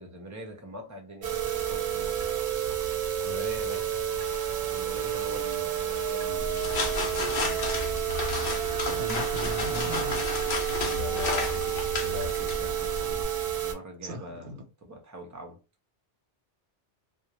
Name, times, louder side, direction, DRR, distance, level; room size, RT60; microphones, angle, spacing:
voice 1, 0.0-2.3 3.2-3.9 4.7-7.7 10.8-13.3 13.6-15.6, equal, 25° right, 0.4 m, -42 dB
sound 1, 1.2-13.7, right 10 dB, 60° right, 0.8 m, -30 dB
sound 2, 6.4-13.2, left 3 dB, 60° left, 0.8 m, -32 dB
voice 2, 9.0-10.2 14.0-14.6, right 2 dB, 90° right, 1.0 m, -37 dB
2.4 x 2.0 x 2.8 m
omnidirectional pair, 1.1 m